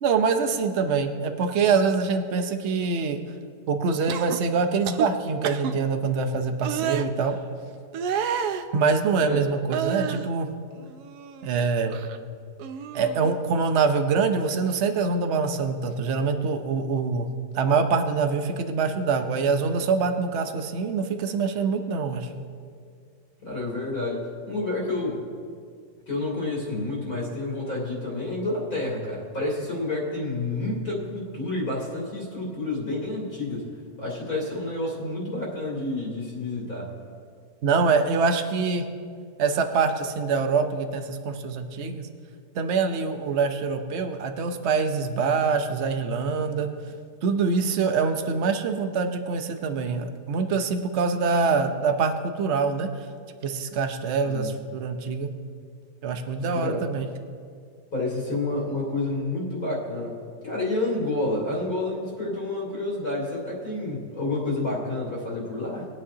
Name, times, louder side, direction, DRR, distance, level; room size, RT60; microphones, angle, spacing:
voice 1, 0.0-3.2 3.7-7.4 8.7-10.5 11.4-12.0 12.9-17.3 17.5-22.3 37.6-38.8 39.4-42.1 42.5-46.7 47.2-52.9 53.4-55.3 56.0-57.1, right 5 dB, 50° right, 6 dB, 0.9 m, -24 dB
sound 1, 4.1-4.4 4.8-5.1 5.4-5.7 6.6-7.0 7.9-8.6 9.7-10.3 10.8-11.6 11.9-12.2 12.6-13.4 14.6-14.8, right 8 dB, 70° right, 1.0 m, -30 dB
voice 2, 23.4-25.2 26.1-33.7 34.0-36.9 54.2-54.5 56.5-56.8 57.9-60.1 60.4-65.9, left 2 dB, 55° left, -5 dB, 3.2 m, -29 dB
21.0 x 8.7 x 2.8 m, 2.2 s
omnidirectional pair, 1.9 m